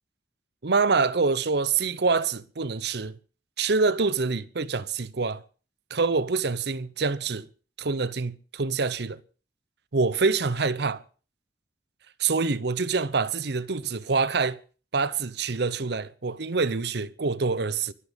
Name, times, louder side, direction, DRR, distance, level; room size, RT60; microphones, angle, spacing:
voice 1, 0.6-3.2 3.6-5.4 5.9-7.5 7.8-9.2 9.9-11.0 12.2-14.6 14.9-17.9, right 4 dB, 60° right, 0.8 m, -26 dB
24.0 x 8.6 x 5.2 m
head